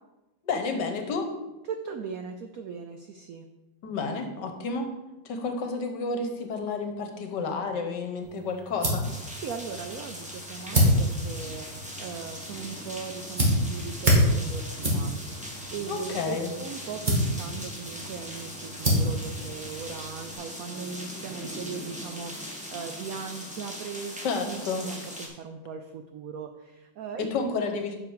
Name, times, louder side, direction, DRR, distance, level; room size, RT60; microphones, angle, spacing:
voice 1, 0.4-1.3 3.8-4.9 5.2-9.1 15.9-16.5 24.2-24.9 27.2-28.0, left 4 dB, 65° left, 5 dB, 1.5 m, -30 dB
voice 2, 1.7-3.5 9.4-24.1 24.4-27.6, right 6 dB, 80° right, 6 dB, 0.8 m, -39 dB
sound 1, 8.2-20.3, equal, 25° right, 1.8 m, -28 dB
sound 2, 9.0-25.3, equal, 5° right, 1.2 m, -40 dB
8.2 x 6.2 x 4.8 m, 1.0 s
omnidirectional pair, 2.1 m